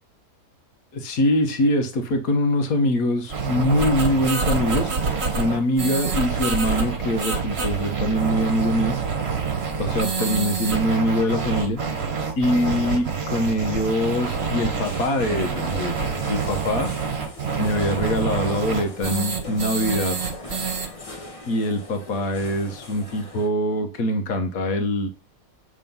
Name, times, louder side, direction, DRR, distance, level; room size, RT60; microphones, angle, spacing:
voice 1, 0.9-4.9 5.4-9.0 9.8-11.8 12.4-16.9 17.6-20.2 21.4-25.1, left 1 dB, 70° left, 6 dB, 1.6 m, -23 dB
sound 1, 3.3-20.9, right 5 dB, 45° right, 1.4 m, -26 dB
sound 2, 14.8-23.5, left 2 dB, 25° left, 1.0 m, -40 dB
7.4 x 3.7 x 5.3 m, 0.31 s
omnidirectional pair, 1.5 m